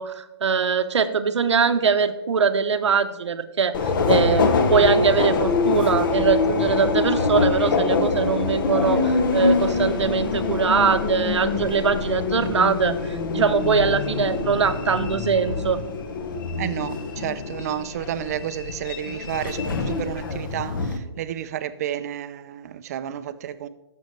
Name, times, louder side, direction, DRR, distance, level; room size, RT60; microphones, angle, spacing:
voice 1, 0.0-15.8, right 6 dB, 90° right, 0.8 m, -22 dB
Subway metro underground, 3.7-21.0, left 4 dB, 50° left, 0.9 m, -24 dB
voice 2, 16.6-23.7, right 10 dB, 35° right, 0.4 m, -31 dB
13.5 x 6.4 x 3.2 m
hypercardioid pair, 155°, 14 cm